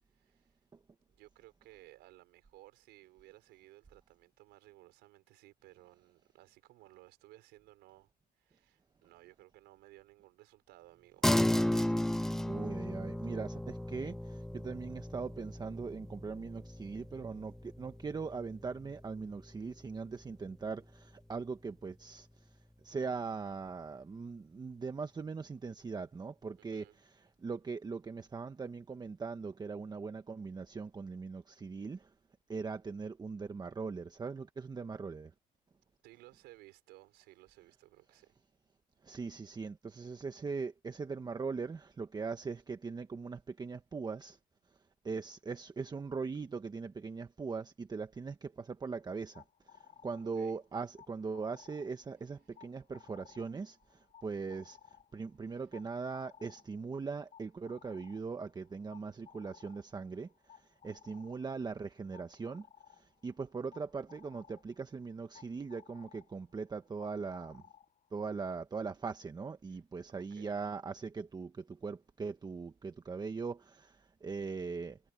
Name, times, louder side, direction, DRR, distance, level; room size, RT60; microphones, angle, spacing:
voice 1, 0.1-0.6 1.1-8.1 8.4-11.2 26.6-27.0 36.0-38.4 50.2-50.6 52.4-52.5 55.5-55.6 69.7-69.8 70.1-70.6, right 18 dB, 90° right, 5.3 m, -59 dB
sound 1, 11.2-21.0, left 1 dB, 5° left, 0.3 m, -35 dB
voice 2, 11.8-22.4 22.8-32.1 32.5-35.3 39.0-44.4 45.0-49.4 49.7-54.8 55.1-60.3 60.5-62.6 62.9-67.6 68.1-75.0, right 4 dB, 25° right, 1.2 m, -40 dB
sound 2, 48.9-68.4, left 8 dB, 45° left, 6.9 m, -60 dB
cardioid pair, 110°, 17 cm